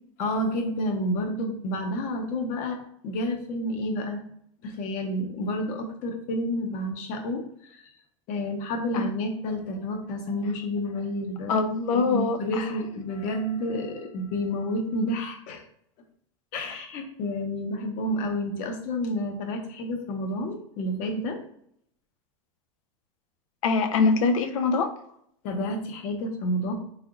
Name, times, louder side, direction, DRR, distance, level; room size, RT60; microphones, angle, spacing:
voice 1, 0.2-4.2 4.6-7.9 8.3-11.6 11.9-15.6 16.5-21.4 25.4-26.7, left 1 dB, 50° left, 5 dB, 0.9 m, -30 dB
voice 2, 11.5-12.6 23.6-24.9, left 4 dB, 75° left, 7 dB, 0.6 m, -23 dB
3.7 x 3.3 x 2.5 m, 0.69 s
hypercardioid pair, 105°, 17 cm